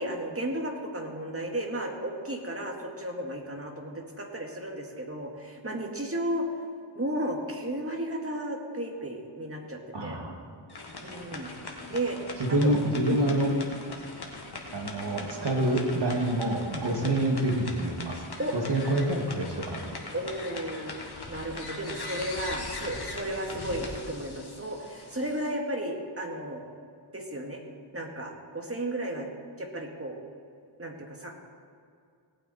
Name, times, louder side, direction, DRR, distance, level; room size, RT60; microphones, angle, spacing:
voice 1, 0.0-6.5 7.0-10.2 11.0-11.5 11.9-12.7 13.1-13.9 16.8-17.2 18.4-18.6 20.1-21.0 21.3-26.6 27.1-27.6 27.9-29.3 29.6-30.2 30.8-31.3, right 1 dB, 30° right, 1 dB, 2.0 m, -34 dB
voice 2, 9.9-10.4 12.4-13.5 14.7-18.2 18.5-20.0, right 1 dB, 60° right, 1 dB, 2.2 m, -27 dB
sound 1, 10.7-25.5, left 3 dB, 50° left, 1.7 m, -41 dB
18.0 x 8.8 x 4.2 m, 2.4 s
wide cardioid pair, 65°, 48 cm